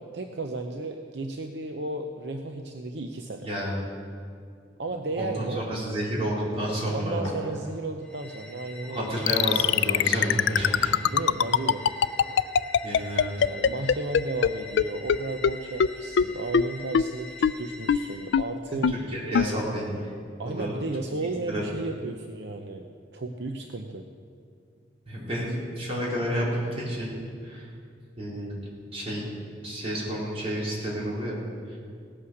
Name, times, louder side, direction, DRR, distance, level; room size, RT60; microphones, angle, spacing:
voice 1, 0.0-3.5 4.8-5.6 6.9-9.1 11.1-11.8 13.4-18.9 20.4-22.8 23.1-24.0, right 2 dB, 70° right, 4 dB, 0.7 m, -34 dB
voice 2, 3.4-3.8 5.2-7.2 8.9-10.9 12.8-13.3 18.9-20.1 20.4-20.7 21.5-21.6 25.1-27.1 27.4-27.7 28.2-28.5 28.9-29.3 29.6-31.4 31.7-31.8, equal, 35° right, -6 dB, 4.3 m, -30 dB
sound 1, 5.4-5.7 6.1-6.2 7.2-7.7 8.8-9.0 10.7-11.1 12.2-12.4 13.6-13.8, equal, 30° left, 3.7 m, -43 dB
sound 2, 8.0-18.5, left 3 dB, 5° left, 1.2 m, -44 dB
sound 3, 9.3-14.5 14.8-14.9 15.1-15.2 15.4-15.5 15.8-15.9 16.2-16.3 16.5-16.6 16.9-17.0 17.4-17.5 17.9-18.0 18.3-18.4 18.8-18.9 19.3-19.5, left 7 dB, 85° left, 0.4 m, -19 dB
17.5 x 8.4 x 6.5 m, 2.3 s
head